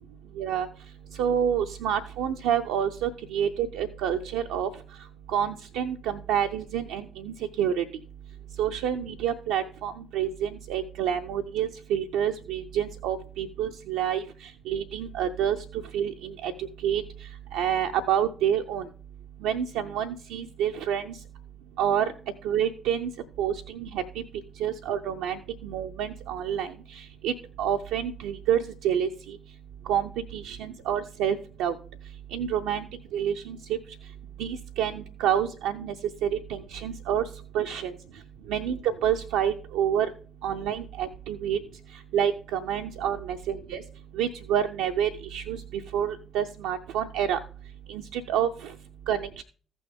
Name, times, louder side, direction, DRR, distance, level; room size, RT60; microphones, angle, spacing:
voice 1, 0.4-0.7 1.2-4.7 5.3-7.8 8.6-14.2 14.7-15.6 15.9-16.5 16.8-17.0 17.5-18.9 19.4-21.1 21.8-22.1 22.4-23.1 23.4-24.0 24.6-29.4 29.9-31.7 32.3-32.9 33.1-33.6 34.4-35.9 36.2-37.2 37.5-37.9 38.5-40.1 40.4-41.6 42.1-43.8 44.2-47.4 47.9-48.7 49.1-49.4, right 9 dB, 65° right, 4 dB, 0.5 m, -28 dB
14.5 x 6.1 x 3.5 m, 0.41 s
figure-of-eight pair, 40°, 0 cm